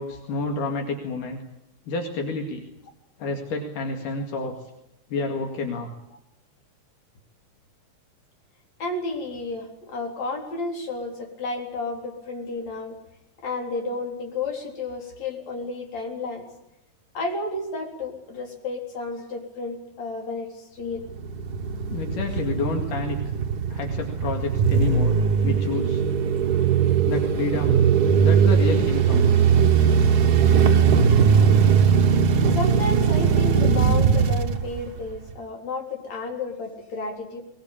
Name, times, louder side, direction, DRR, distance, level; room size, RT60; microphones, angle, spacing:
voice 1, 0.0-1.4 1.9-2.6 3.2-4.5 5.1-5.9 21.9-23.2 23.7-25.2 25.4-26.0 27.1-27.8 28.2-29.3, left 3 dB, 75° left, 3 dB, 3.7 m, -29 dB
voice 2, 8.8-13.0 13.4-16.5 17.1-21.1 32.5-37.4, left 2 dB, 55° left, 2 dB, 5.0 m, -32 dB
sound 1, 21.0-35.3, right 6 dB, 75° right, 0.8 m, -20 dB
21.0 x 21.0 x 8.7 m, 0.84 s
omnidirectional pair, 3.7 m